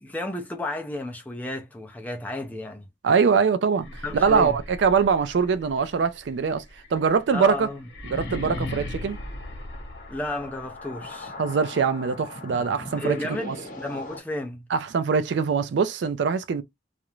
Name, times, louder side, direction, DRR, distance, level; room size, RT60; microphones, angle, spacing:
voice 1, 0.0-2.9 4.0-4.6 7.3-7.8 10.1-11.3 13.0-14.6, left 1 dB, 10° left, 0.4 m, -32 dB
voice 2, 3.0-6.6 6.9-7.7 8.1-9.2 11.4-13.2 13.4-13.6 14.7-16.6, right 5 dB, 75° right, 0.4 m, -23 dB
sound 1, 3.7-10.6, left 1 dB, 85° left, 0.9 m, -38 dB
sound 2, 9.1-14.2, left 2 dB, 45° left, 0.8 m, -40 dB
2.4 x 2.0 x 3.0 m
head